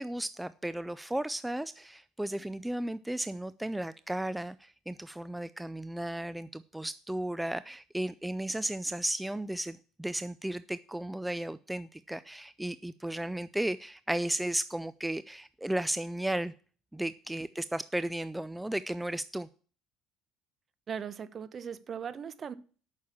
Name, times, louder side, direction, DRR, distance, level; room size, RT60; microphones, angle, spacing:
voice 1, 0.0-16.5 16.9-19.5, right 1 dB, 5° right, 0.4 m, -34 dB
voice 2, 20.9-22.5, right 7 dB, 40° right, 1.0 m, -38 dB
8.4 x 6.4 x 7.2 m
supercardioid pair, 85°, 0 cm